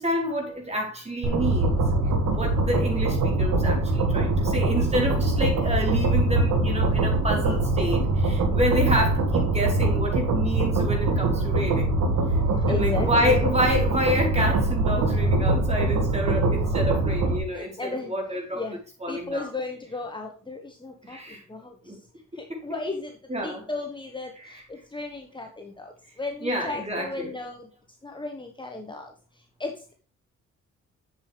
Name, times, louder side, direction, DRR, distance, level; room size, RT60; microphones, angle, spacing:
voice 1, 0.0-1.8 2.3-11.9 12.3-12.4 12.7-19.5 21.0-21.4 21.8-22.0 22.5-22.8 23.3-23.7 24.3-24.6 26.4-27.3, equal, 20° right, 1 dB, 4.3 m, -29 dB
sound 1, 1.2-17.4, right 2 dB, 75° right, 2.1 m, -23 dB
voice 2, 11.0-11.4 12.5-13.4 17.5-18.1 18.5-18.8 19.1-21.2 21.5-21.7 22.4-23.1 23.4-24.3 24.7-25.9 26.2-27.6 28.0-29.1 29.6-29.9, left 3 dB, 15° left, 3 dB, 1.4 m, -34 dB
8.1 x 7.5 x 3.5 m, 0.39 s
cardioid pair, 90°, 30 cm